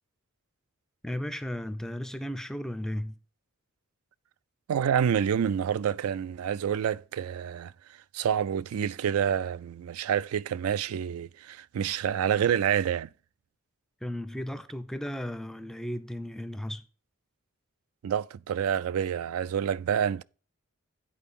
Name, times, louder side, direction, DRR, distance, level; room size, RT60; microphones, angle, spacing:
voice 1, 1.0-3.1 14.0-16.8, equal, ahead, 0.4 m, -35 dB
voice 2, 4.7-7.7 8.1-13.1 18.0-20.2, right 8 dB, 90° right, 0.3 m, -28 dB
8.6 x 4.5 x 5.4 m
head